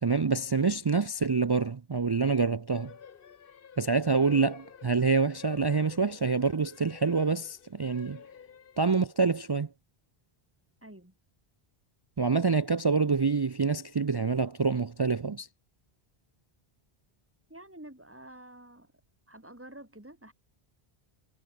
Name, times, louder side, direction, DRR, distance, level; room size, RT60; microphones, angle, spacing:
voice 1, 0.0-2.9 3.8-8.2 8.8-9.7 12.2-15.5, right 4 dB, 40° right, 0.3 m, -26 dB
sound 1, 2.7-9.3, left 7 dB, 60° left, 1.1 m, -50 dB
voice 2, 10.8-11.1 17.5-18.9 19.3-20.3, right 1 dB, 10° right, 3.5 m, -48 dB
omnidirectional pair, 1.0 m